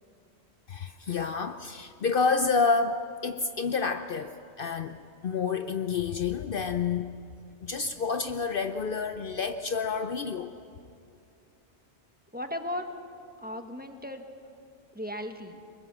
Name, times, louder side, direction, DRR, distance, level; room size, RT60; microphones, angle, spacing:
voice 1, 0.7-7.1 7.6-10.5, left 5 dB, 55° left, 8 dB, 0.8 m, -29 dB
voice 2, 12.3-12.9 13.4-14.2 14.9-15.6, left 1 dB, 10° right, 5 dB, 1.3 m, -36 dB
24.5 x 21.0 x 7.5 m, 2.5 s
omnidirectional pair, 1.2 m